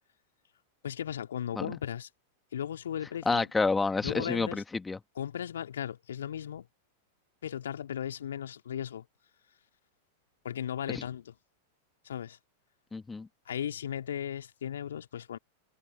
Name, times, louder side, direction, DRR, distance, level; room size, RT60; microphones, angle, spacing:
voice 1, 0.8-2.1 2.5-3.5 4.0-4.6 5.2-6.7 7.4-9.0 10.4-11.3 12.0-12.4 13.5-15.4, left 9 dB, 65° left, 2.5 m, -36 dB
voice 2, 3.3-5.0 10.9-11.0 12.9-13.3, left 3 dB, 10° left, 2.0 m, -29 dB
figure-of-eight pair, 95°, 0 cm